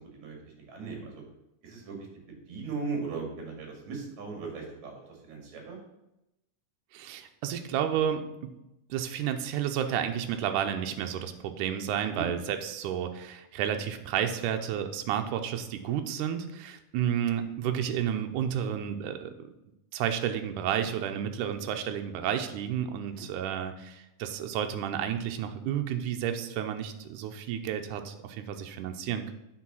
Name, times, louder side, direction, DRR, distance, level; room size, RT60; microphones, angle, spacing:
voice 1, 0.7-1.2 1.6-2.0 2.5-5.8 12.1-12.3 23.1-23.3, right 4 dB, 60° right, 1 dB, 3.2 m, -37 dB
voice 2, 6.9-8.5 8.9-19.3 19.9-29.3, right 9 dB, 80° right, 6 dB, 2.2 m, -31 dB
8.5 x 4.8 x 6.0 m, 0.89 s
omnidirectional pair, 3.7 m